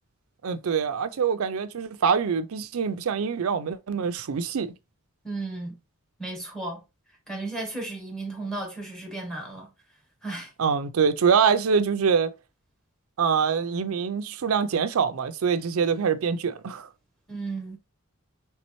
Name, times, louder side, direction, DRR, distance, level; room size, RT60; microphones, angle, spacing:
voice 1, 0.4-4.7 10.6-12.3 13.2-16.9, right 6 dB, 80° right, 0.5 m, -24 dB
voice 2, 5.2-5.8 6.2-6.8 7.3-9.7 10.2-10.5 17.3-17.8, right 2 dB, 5° left, 1.3 m, -34 dB
4.2 x 3.4 x 3.0 m
head